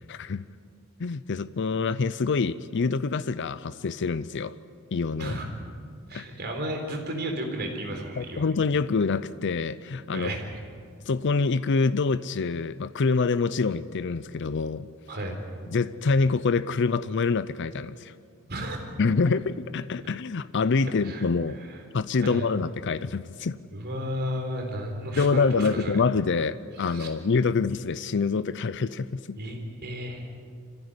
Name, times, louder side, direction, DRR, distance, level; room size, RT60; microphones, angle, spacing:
voice 1, 0.1-0.5 1.0-4.6 4.9-5.4 6.1-6.2 8.2-10.3 11.1-14.9 15.7-18.1 19.0-21.6 21.9-23.6 25.2-29.4, left 4 dB, 60° left, 15 dB, 0.5 m, -26 dB
voice 2, 6.1-8.5 10.1-10.4 15.1-15.4 18.5-18.8 21.0-21.3 21.7-21.8 22.2-22.5 23.7-25.9 26.8-27.1 29.4-30.2, equal, 50° right, 3 dB, 4.0 m, -33 dB
26.0 x 15.5 x 9.7 m, 2.3 s
head